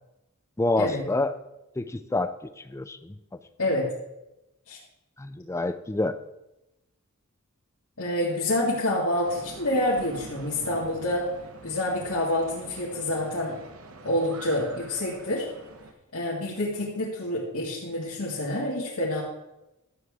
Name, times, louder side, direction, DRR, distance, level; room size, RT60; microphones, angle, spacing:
voice 1, 0.6-1.3 1.8-3.2 5.2-6.1, left 2 dB, 15° left, 11 dB, 0.4 m, -27 dB
voice 2, 3.6-3.9 4.7-4.8 8.0-11.3 11.6-13.6 14.0-15.5 16.1-19.2, left 1 dB, 85° left, -7 dB, 2.1 m, -27 dB
sound 1, 9.2-15.9, right 2 dB, 75° right, 1.1 m, -45 dB
12.5 x 8.1 x 3.6 m, 0.92 s
head